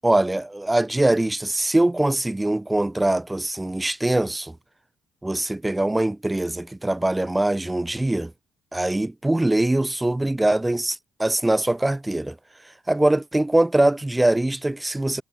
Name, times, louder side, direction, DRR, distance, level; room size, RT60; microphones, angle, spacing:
voice 1, 0.0-4.6 5.2-8.3 8.7-12.4 12.9-15.2, right 1 dB, 10° right, 7.3 m, -22 dB
cardioid pair, 110°, 0 cm